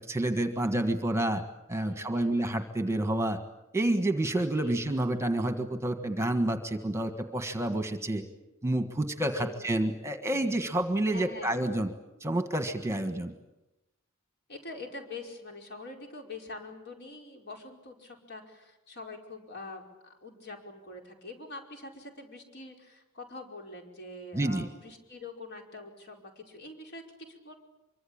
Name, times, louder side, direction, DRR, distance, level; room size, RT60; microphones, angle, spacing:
voice 1, 0.0-1.4 1.7-3.4 3.7-8.2 8.6-11.9 12.2-13.3 24.3-24.7, right 1 dB, 15° right, 7 dB, 1.5 m, -29 dB
voice 2, 1.8-2.5 4.6-4.8 9.3-9.5 11.1-11.8 13.1-13.2 14.5-27.5, left 2 dB, 50° left, 2 dB, 5.1 m, -45 dB
25.5 x 24.0 x 8.8 m, 0.96 s
head